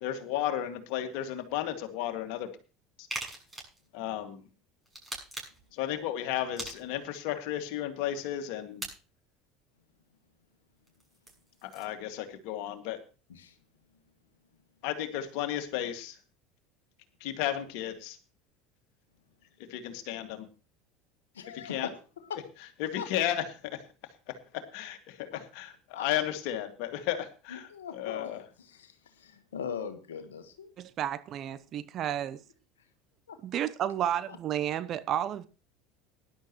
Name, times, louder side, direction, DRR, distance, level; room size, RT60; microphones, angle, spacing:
voice 1, 0.0-2.5 3.9-4.4 5.7-8.8 11.6-13.0 14.8-16.2 17.2-18.2 19.7-20.5 21.5-21.9 22.8-23.8 24.7-28.4, left 11 dB, 60° left, 2.2 m, -33 dB
sound 1, 3.1-3.8 4.9-5.7 6.6-7.2 8.8-8.9 10.9-11.9, right 2 dB, 15° right, 6.7 m, -40 dB
voice 2, 21.3-21.9 22.2-22.4 23.0-23.1 25.3-25.4 25.9-26.1 27.5-28.3 28.6-30.4 33.3-33.4 34.3-34.4, left 7 dB, 80° left, 1.5 m, -40 dB
voice 3, 30.8-32.4 33.4-35.5, right 10 dB, 45° right, 0.9 m, -32 dB
18.5 x 11.5 x 3.1 m
figure-of-eight pair, 70°, 0 cm